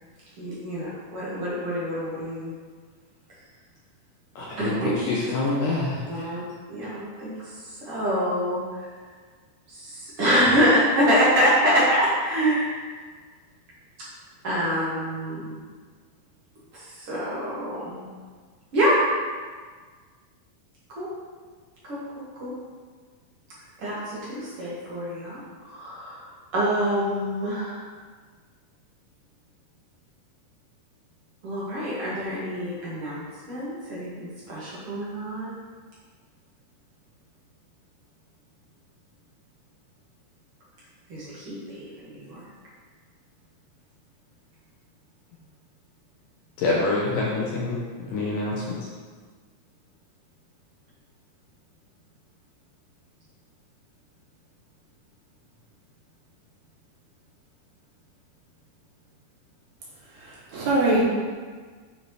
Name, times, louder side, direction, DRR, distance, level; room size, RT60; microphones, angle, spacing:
voice 1, 0.4-2.5 4.6-4.9 6.1-6.4 6.7-7.5 7.8-8.6 9.7-12.7 14.4-15.5 16.7-18.1 18.7-19.0 20.9-21.1 21.9-22.0 22.4-22.5 23.8-27.8 31.4-35.5 41.1-42.4, equal, 50° right, -9 dB, 1.9 m, -26 dB
voice 2, 4.4-6.3 46.6-47.8 48.1-48.8, left 3 dB, 70° left, -5 dB, 2.1 m, -26 dB
voice 3, 60.1-61.0, right 2 dB, 75° right, -9 dB, 4.1 m, -23 dB
9.6 x 4.5 x 3.2 m, 1.5 s
omnidirectional pair, 4.6 m